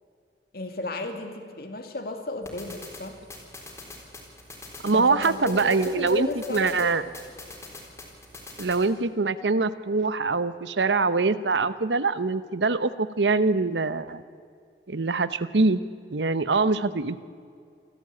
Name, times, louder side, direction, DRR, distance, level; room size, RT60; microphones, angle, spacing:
voice 1, 0.5-3.2 4.9-7.1, left 2 dB, 60° left, 5 dB, 2.5 m, -34 dB
sound 1, 2.4-8.9, left 2 dB, 15° left, 4.0 m, -44 dB
voice 2, 4.8-7.0 8.6-14.2 14.9-15.8 16.1-17.2, right 3 dB, 85° right, 14 dB, 0.9 m, -24 dB
27.5 x 14.0 x 8.7 m, 2.2 s
head